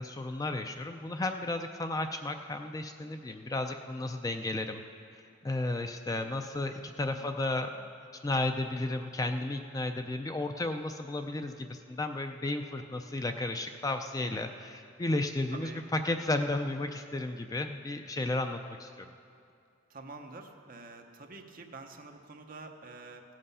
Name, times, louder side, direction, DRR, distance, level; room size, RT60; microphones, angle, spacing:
voice 1, 0.0-4.8 5.4-7.9 8.2-19.1, left 2 dB, 15° left, 6 dB, 0.4 m, -33 dB
voice 2, 15.5-15.8 19.9-23.2, right 3 dB, 45° right, 4 dB, 0.9 m, -47 dB
16.5 x 7.7 x 5.5 m, 2.5 s
head